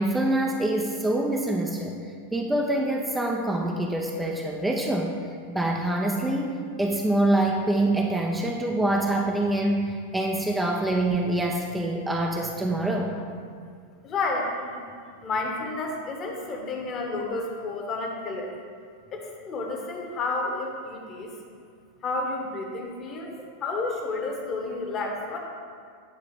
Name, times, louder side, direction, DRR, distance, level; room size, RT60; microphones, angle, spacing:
voice 1, 0.0-2.0 2.3-5.2 5.5-13.1, right 1 dB, 5° right, 0 dB, 0.5 m, -25 dB
voice 2, 14.0-14.9 15.2-18.5 19.1-21.3 22.0-25.4, left 3 dB, 30° left, 1 dB, 1.1 m, -31 dB
8.8 x 4.0 x 4.9 m, 2.2 s
figure-of-eight pair, 90°, 0 cm